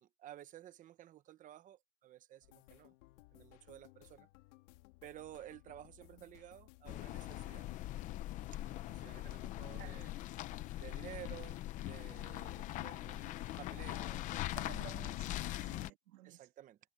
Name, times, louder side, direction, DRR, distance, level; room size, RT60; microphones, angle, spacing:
voice 1, 0.0-2.9 3.3-4.3 5.0-7.7 8.6-10.1 10.8-14.5 16.2-16.8, right 12 dB, 15° right, 0.8 m, -54 dB
sound 1, 2.4-9.3 9.5-10.6 10.9-11.2 11.5-11.7, left 22 dB, 50° left, 2.1 m, -63 dB
sound 2, 6.9-15.9, left 15 dB, 20° left, 0.5 m, -42 dB
voice 2, 9.7-10.1 14.5-16.4, right 16 dB, 70° right, 2.6 m, -54 dB
supercardioid pair, 145°, 45 cm